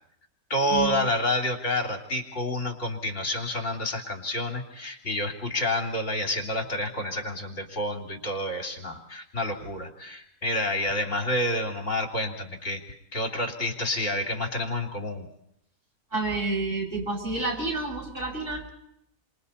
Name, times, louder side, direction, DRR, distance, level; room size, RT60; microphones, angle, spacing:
voice 1, 0.5-15.3, left 1 dB, 55° left, 3 dB, 3.3 m, -29 dB
voice 2, 16.1-18.6, right 2 dB, 55° right, -2 dB, 6.9 m, -29 dB
29.0 x 26.0 x 4.3 m, 0.79 s
omnidirectional pair, 1.5 m